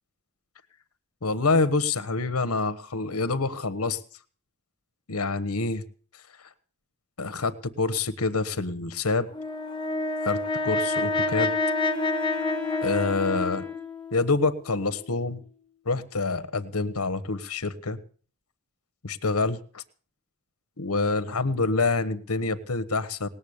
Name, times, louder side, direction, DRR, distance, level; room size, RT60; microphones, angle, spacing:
voice 1, 1.2-4.0 5.1-5.8 7.2-9.3 10.2-10.4 10.6-11.5 12.8-13.6 14.1-15.4 15.9-18.0 19.0-19.8 20.8-23.3, left 3 dB, 90° left, 12 dB, 1.2 m, -26 dB
Brass instrument, 9.3-13.8, left 2 dB, 20° left, 1.3 m, -27 dB
Wind instrument woodwind instrument, 10.7-15.7, left 6 dB, 5° left, 1.3 m, -39 dB
19.5 x 7.3 x 8.7 m, 0.43 s
head